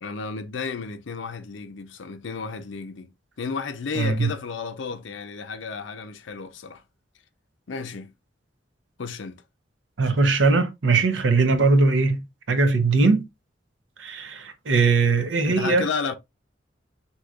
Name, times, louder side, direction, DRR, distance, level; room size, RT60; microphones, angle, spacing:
voice 1, 0.0-3.1 3.4-6.8 7.7-8.1 9.0-9.4 15.2-16.1, left 5 dB, 80° left, 0.6 m, -32 dB
voice 2, 4.0-4.3 10.0-13.3 14.0-15.9, right 4 dB, 80° right, 0.7 m, -20 dB
6.1 x 2.9 x 2.3 m
head